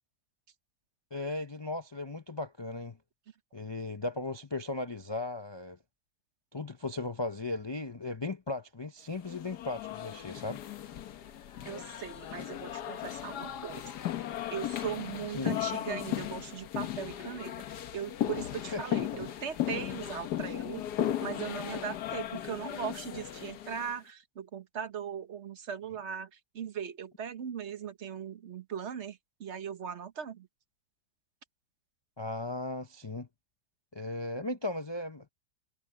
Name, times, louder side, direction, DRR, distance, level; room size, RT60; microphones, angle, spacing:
voice 1, 1.1-3.0 3.5-5.8 6.5-10.6 15.4-15.5 18.7-19.0 32.2-33.3 33.9-35.3, left 2 dB, 45° left, 0.3 m, -36 dB
sound 1, 9.2-23.9, left 12 dB, 70° left, 1.5 m, -36 dB
voice 2, 11.6-14.0 14.5-20.8 21.2-30.5, right 8 dB, 45° right, 1.2 m, -39 dB
omnidirectional pair, 1.8 m